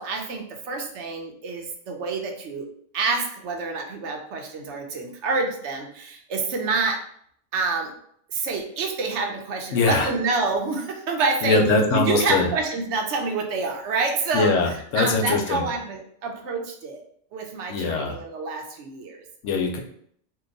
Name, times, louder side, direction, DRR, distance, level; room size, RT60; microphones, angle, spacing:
voice 1, 0.0-2.7 2.9-7.0 7.5-7.9 8.3-11.6 11.9-17.0 17.3-19.2, right 4 dB, 70° right, 2 dB, 0.8 m, -27 dB
voice 2, 9.7-10.1 11.4-12.5 14.3-15.7 17.7-18.2 19.4-19.8, left 3 dB, 80° left, 2 dB, 1.0 m, -22 dB
2.8 x 2.2 x 3.8 m, 0.66 s
omnidirectional pair, 1.3 m